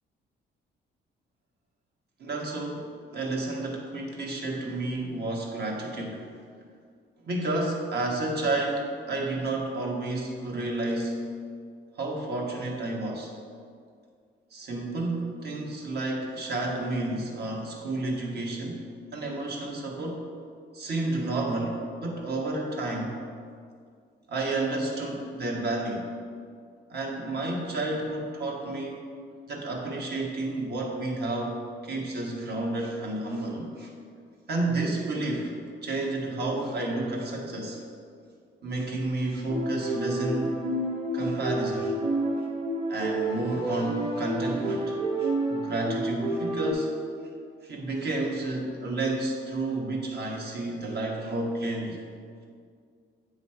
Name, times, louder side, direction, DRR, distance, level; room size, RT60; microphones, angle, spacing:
voice 1, 2.2-6.2 7.2-11.2 11.9-13.3 14.5-18.8 19.1-20.3 20.7-23.2 24.3-26.1 26.9-29.0 29.5-31.6 31.8-33.9 34.5-35.5 35.8-37.8 38.6-40.6 41.1-42.0 42.9-46.9 47.6-52.0, right 2 dB, 55° right, -1 dB, 1.3 m, -31 dB
sound 1, 39.5-46.7, right 1 dB, 25° right, 1.1 m, -30 dB
8.6 x 3.2 x 4.3 m, 2.2 s
cardioid pair, 90°, 20 cm